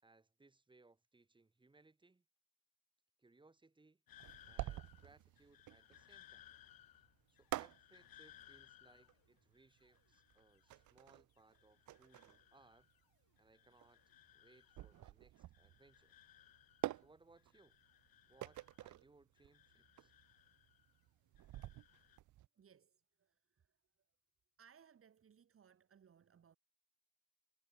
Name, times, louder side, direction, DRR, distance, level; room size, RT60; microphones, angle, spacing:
voice 1, 0.0-2.2 3.2-4.0 4.5-6.5 7.3-12.9 13.4-14.0 14.3-16.1 17.0-17.8 18.3-20.1, right 3 dB, 15° right, 6.8 m, -68 dB
sound 1, 4.1-11.1 11.4-13.1 13.4-15.1 15.4-17.1 17.4-19.0 19.4-21.0 21.4-22.2, left 12 dB, 70° left, 4.5 m, -65 dB
sound 2, 4.2-22.5, right 14 dB, 50° right, 0.6 m, -49 dB
voice 2, 22.5-23.8 24.6-26.6, right 7 dB, 35° right, 4.2 m, -67 dB
cardioid pair, 180°, 37 cm